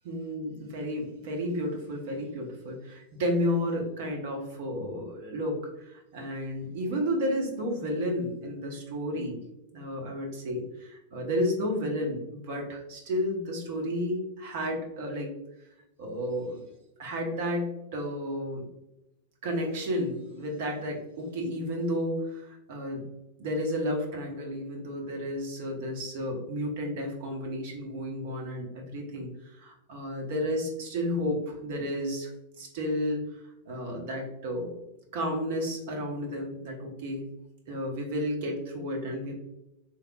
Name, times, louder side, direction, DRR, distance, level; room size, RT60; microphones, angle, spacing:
voice 1, 0.0-9.4 9.7-15.3 16.0-16.6 17.0-18.6 19.4-23.0 23.4-32.3 32.6-33.2 33.7-34.7 35.1-37.2 37.7-39.3, equal, 50° right, 1 dB, 0.9 m, -32 dB
3.4 x 3.0 x 2.3 m, 0.90 s
figure-of-eight pair, 90°, 0 cm